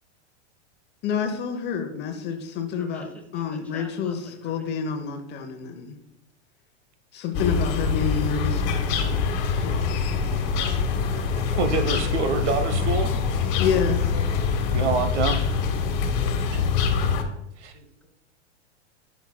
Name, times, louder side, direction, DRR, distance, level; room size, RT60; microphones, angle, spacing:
voice 1, 1.0-3.1 3.3-5.9 7.1-9.1 9.6-9.9 13.6-14.0, left 6 dB, 30° left, 5 dB, 0.8 m, -28 dB
voice 2, 2.8-4.7 8.8-11.6 17.7-18.1, left 1 dB, 5° left, 1 dB, 1.2 m, -49 dB
sound 1, 7.3-17.2, left 5 dB, 50° left, 1.2 m, -24 dB
voice 3, 11.5-13.1 14.7-15.4 16.5-16.6 17.6-17.7, right 4 dB, 75° right, 9 dB, 0.9 m, -26 dB
10.5 x 5.8 x 2.2 m, 0.80 s
hypercardioid pair, 120°, 35 cm